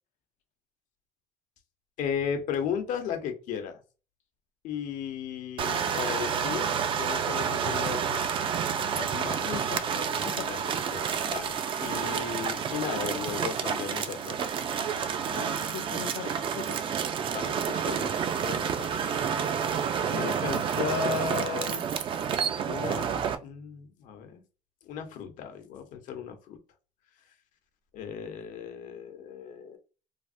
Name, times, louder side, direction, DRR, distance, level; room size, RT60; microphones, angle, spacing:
voice 1, 2.0-3.8 4.6-6.7 7.0-8.2 9.2-9.5 9.8-10.1 10.3-10.6 10.9-11.6 11.8-14.4 15.3-15.6 17.3-18.9 20.1-21.9 22.7-23.1 23.4-24.4 24.8-26.6 27.9-29.8, left 7 dB, 80° left, 0.8 m, -35 dB
sound 1, 5.6-23.4, right 7 dB, 40° right, 0.3 m, -29 dB
voice 2, 9.0-9.8 10.2-10.5 15.7-16.8, left 10 dB, 60° left, 0.4 m, -39 dB
3.3 x 2.1 x 2.5 m
cardioid pair, 145°, 13 cm